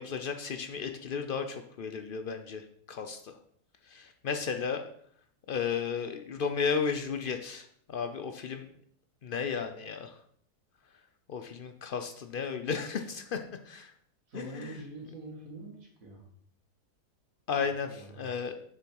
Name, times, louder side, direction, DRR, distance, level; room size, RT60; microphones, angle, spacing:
voice 1, 0.0-3.3 3.9-4.8 5.5-8.7 9.2-10.1 11.3-13.9 14.3-14.8 17.5-18.5, left 6 dB, 80° left, 7 dB, 0.4 m, -34 dB
voice 2, 14.3-16.2 17.9-18.3, right 2 dB, 55° right, -1 dB, 2.6 m, -45 dB
7.0 x 6.7 x 4.6 m, 0.66 s
omnidirectional pair, 1.7 m